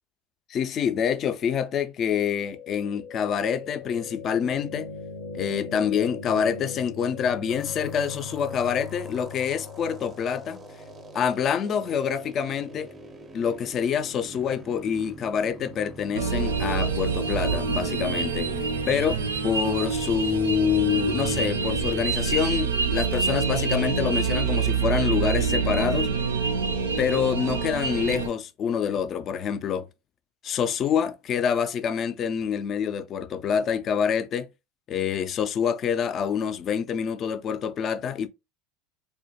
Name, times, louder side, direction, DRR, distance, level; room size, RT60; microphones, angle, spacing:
voice 1, 0.5-4.9 5.3-10.6 11.1-12.9 13.3-18.5 18.9-26.1 27.0-29.9 30.4-34.5 34.9-38.3, left 7 dB, 40° left, 0.3 m, -26 dB
sound 1, 2.4-14.4, left 4 dB, 80° left, 0.6 m, -41 dB
sound 2, 7.5-22.1, right 3 dB, 25° right, 0.4 m, -41 dB
sound 3, 16.1-28.3, right 5 dB, 85° right, 0.4 m, -26 dB
2.1 x 2.1 x 2.7 m
hypercardioid pair, 85°, 0 cm